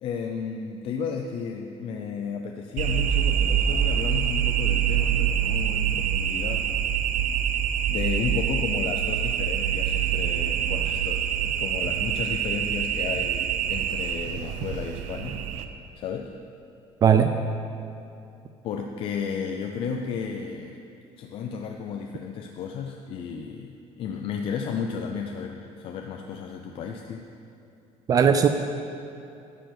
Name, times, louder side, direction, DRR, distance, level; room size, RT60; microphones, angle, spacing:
voice 1, 0.0-6.7 7.9-15.4 16.0-16.3 18.6-20.8 21.2-27.2, left 6 dB, 50° left, 2 dB, 0.6 m, -33 dB
sound 1, 2.8-15.7, right 9 dB, 85° right, 0.6 m, -25 dB
voice 2, 17.0-17.3 28.1-28.5, right 7 dB, 30° right, 7 dB, 0.4 m, -17 dB
11.5 x 6.7 x 6.0 m, 2.6 s
cardioid pair, 165°, 12 cm